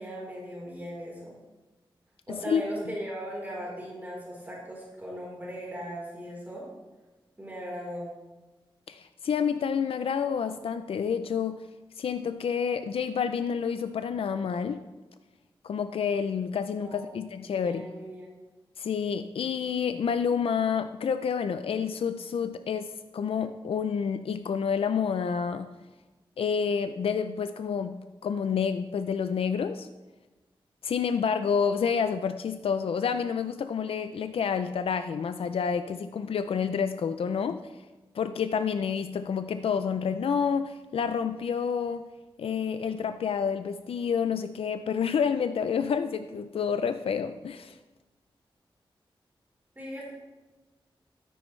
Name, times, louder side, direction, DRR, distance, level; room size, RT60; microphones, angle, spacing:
voice 1, 0.0-1.3 2.3-6.7 7.4-8.1 16.8-17.2 17.5-18.3 49.8-50.1, equal, 20° right, -4 dB, 3.9 m, -38 dB
voice 2, 8.9-11.6 12.0-14.8 15.6-17.9 18.8-25.7 26.4-29.9 30.8-37.6 38.1-42.1 42.4-47.8, left 6 dB, 85° left, 10 dB, 0.4 m, -29 dB
12.5 x 10.0 x 3.2 m, 1.2 s
wide cardioid pair, 80°, 9 cm